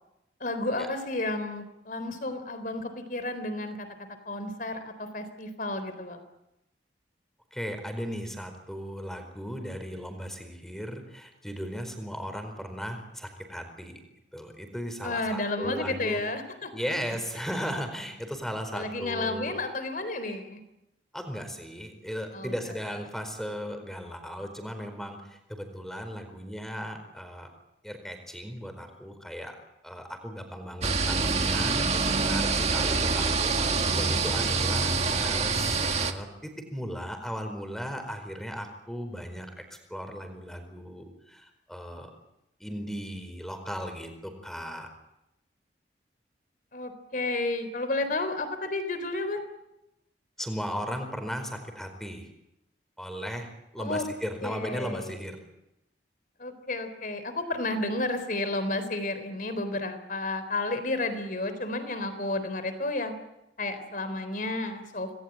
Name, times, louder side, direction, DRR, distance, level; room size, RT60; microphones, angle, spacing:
voice 1, 0.4-3.9 4.3-6.2 15.0-16.7 18.7-20.6 22.3-22.5 46.7-49.4 53.8-54.0 54.4-55.1 56.4-63.1 63.6-65.1, left 2 dB, 50° left, 10 dB, 3.9 m, -32 dB
voice 2, 7.5-13.9 14.3-16.2 16.7-19.5 21.1-27.5 27.8-29.5 29.8-42.1 42.6-44.9 50.4-52.3 53.0-55.4, equal, ahead, 6 dB, 4.5 m, -37 dB
sound 1, 30.8-36.1, right 4 dB, 35° right, 1.9 m, -26 dB
27.5 x 20.0 x 9.0 m, 0.89 s
head